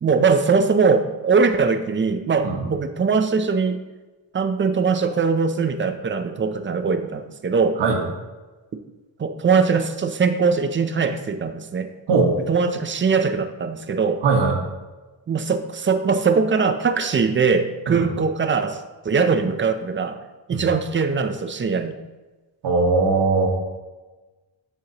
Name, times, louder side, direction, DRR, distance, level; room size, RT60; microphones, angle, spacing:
voice 1, 0.0-3.8 4.3-7.8 9.2-11.9 12.5-14.2 15.3-20.2 20.5-22.0, right 5 dB, 25° right, 8 dB, 0.4 m, -21 dB
voice 2, 14.2-14.6 17.9-18.0 20.5-20.6 22.6-23.5, right 4 dB, 65° right, 0 dB, 1.5 m, -19 dB
13.0 x 4.4 x 2.9 m, 1.2 s
wide cardioid pair, 145°, 45 cm